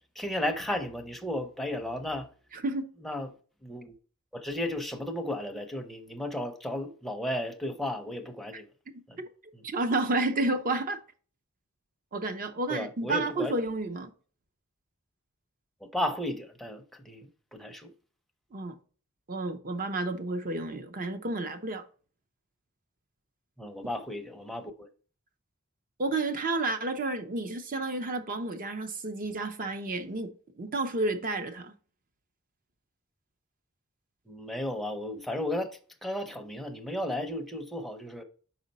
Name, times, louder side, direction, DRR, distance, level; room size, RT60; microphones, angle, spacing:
voice 1, 0.2-2.3 3.0-3.3 3.6-3.9 4.3-8.7 9.1-9.2 9.5-9.6 12.7-13.5 15.8-17.9 23.6-24.9 34.3-38.2, left 1 dB, ahead, 0.6 m, -34 dB
voice 2, 2.5-2.9 9.6-11.0 12.1-14.1 18.5-18.8 19.3-21.8 26.0-30.3 30.6-31.7, right 2 dB, 40° right, 0.7 m, -31 dB
5.8 x 4.3 x 4.1 m
head